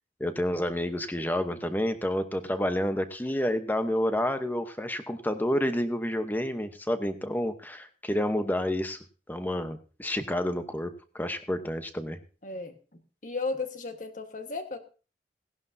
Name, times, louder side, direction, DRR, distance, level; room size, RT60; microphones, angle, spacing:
voice 1, 0.2-9.0 9.3-12.2, left 1 dB, 10° left, 9 dB, 0.9 m, -29 dB
voice 2, 12.4-12.8 13.2-14.8, left 3 dB, 45° left, 7 dB, 1.5 m, -34 dB
18.0 x 11.5 x 2.7 m, 0.35 s
head